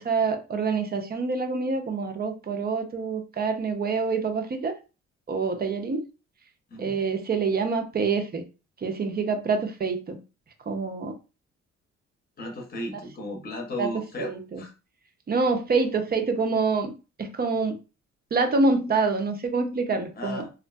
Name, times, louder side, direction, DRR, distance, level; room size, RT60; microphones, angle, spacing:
voice 1, 0.0-4.7 5.3-6.0 6.8-8.4 8.8-10.2 10.7-11.1 13.8-13.9 14.2-14.6 15.3-17.8 18.3-20.4, right 4 dB, 30° right, 0.5 m, -26 dB
voice 2, 12.4-14.7 20.1-20.7, left 1 dB, 30° left, 0.8 m, -35 dB
2.5 x 2.4 x 2.2 m
cardioid pair, 90°, 30 cm